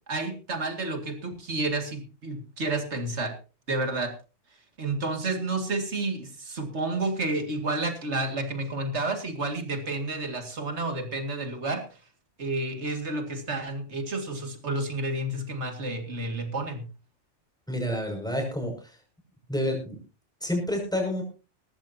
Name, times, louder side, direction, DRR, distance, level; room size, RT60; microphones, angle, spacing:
voice 1, 0.1-3.3 3.7-4.1 4.8-11.8 12.4-16.9, right 2 dB, 70° right, 6 dB, 2.5 m, -30 dB
voice 2, 17.7-19.0 19.5-20.0 20.4-21.2, left 1 dB, 5° left, 1 dB, 6.1 m, -29 dB
19.0 x 14.0 x 2.8 m, 0.33 s
omnidirectional pair, 1.2 m